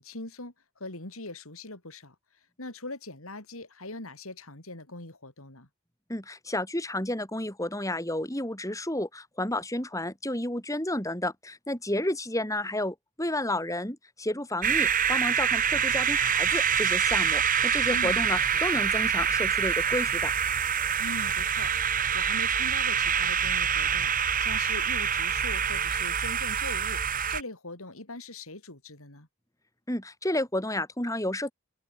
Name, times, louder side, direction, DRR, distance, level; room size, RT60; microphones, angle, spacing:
voice 1, 0.0-2.1 2.6-5.7 17.9-18.6 21.0-27.0 27.3-29.3, left 2 dB, 75° left, 5.0 m, -41 dB
voice 2, 6.1-20.3 29.9-31.5, left 1 dB, 15° left, 4.9 m, -31 dB
sound 1, 14.6-27.4, right 8 dB, 40° right, 2.3 m, -26 dB
head